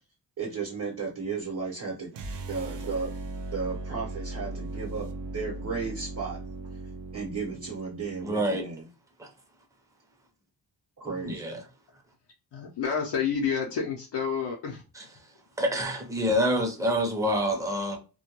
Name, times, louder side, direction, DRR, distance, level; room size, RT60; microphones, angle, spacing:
voice 1, 0.4-2.2 2.4-3.1 3.5-6.4 7.1-8.9 11.0-11.6, right 4 dB, 45° right, 0.8 m, -34 dB
sound 1, 2.1-8.4, right 2 dB, 75° right, 0.5 m, -38 dB
voice 2, 8.2-8.6 11.2-11.5 15.6-18.0, equal, 10° right, 0.6 m, -26 dB
voice 3, 12.5-14.8, left 6 dB, 75° left, 0.6 m, -29 dB
2.2 x 2.1 x 2.8 m
wide cardioid pair, 85°, 42 cm